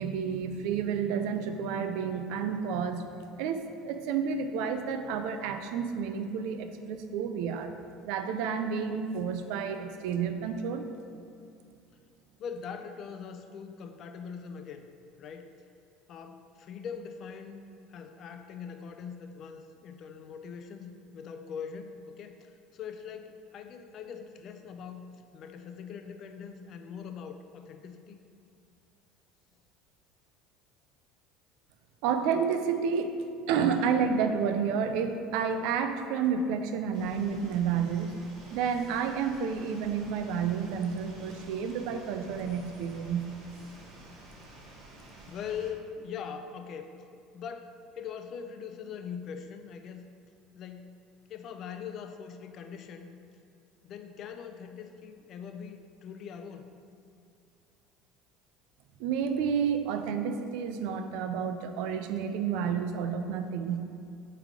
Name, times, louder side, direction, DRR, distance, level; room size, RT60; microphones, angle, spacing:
voice 1, 0.0-3.1 3.4-7.8 8.0-10.9 32.0-33.2 33.5-38.2 38.5-43.3 59.0-63.9, right 6 dB, 75° right, 8 dB, 0.5 m, -30 dB
voice 2, 12.4-14.9 15.2-15.5 16.1-17.6 17.9-25.1 25.3-28.2 45.3-46.9 47.3-50.0 50.5-50.9 51.3-53.2 53.8-56.7, left 7 dB, 50° left, 7 dB, 0.4 m, -42 dB
sound 1, 36.9-45.7, right 1 dB, 60° right, 1.4 m, -50 dB
8.0 x 3.4 x 3.7 m, 2.5 s
supercardioid pair, 110°, 0 cm